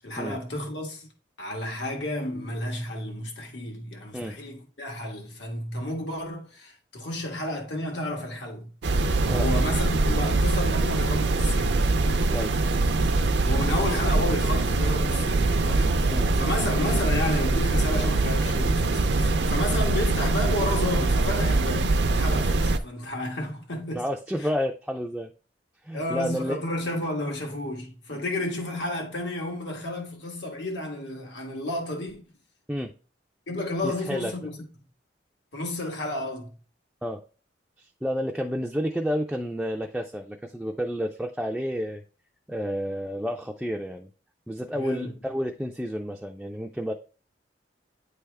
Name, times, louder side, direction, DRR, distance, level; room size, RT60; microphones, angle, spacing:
voice 1, 0.0-1.1 1.4-8.7 9.2-11.9 13.5-24.0 24.4-24.5 25.9-32.2 33.5-34.5 35.5-36.6 44.7-45.1, left 1 dB, 85° left, 1.7 m, -32 dB
sound 1, 8.8-22.8, right 2 dB, 70° right, 0.5 m, -23 dB
voice 2, 23.9-25.3 25.8-26.6 28.1-28.2 32.7-32.9 33.8-34.3 37.0-37.2 37.8-42.0 42.5-44.1 44.5-46.9, equal, 5° right, 0.3 m, -30 dB
9.1 x 3.4 x 3.3 m
head